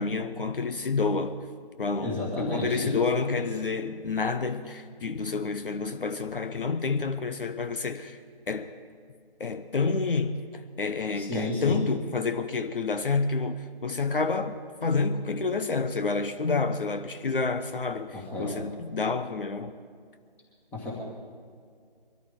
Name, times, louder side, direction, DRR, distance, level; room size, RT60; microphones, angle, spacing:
voice 1, 0.0-1.5 1.8-8.2 8.5-8.7 9.4-19.7, left 4 dB, 65° left, 0.9 m, -29 dB
voice 2, 2.0-2.8 11.1-11.9 18.1-18.5 20.7-20.9, left 2 dB, 5° left, 1.9 m, -32 dB
23.0 x 13.5 x 3.7 m
figure-of-eight pair, 155°, 30 cm